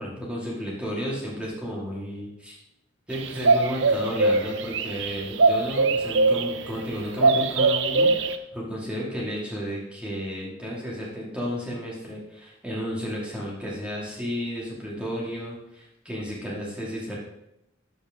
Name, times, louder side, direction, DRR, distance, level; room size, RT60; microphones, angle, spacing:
voice 1, 0.0-2.6 3.1-17.1, equal, 5° right, -5 dB, 2.6 m, -33 dB
sound 1, 3.1-6.9 7.2-8.4, right 3 dB, 65° right, 0.6 m, -22 dB
13.0 x 5.2 x 3.8 m, 0.85 s
head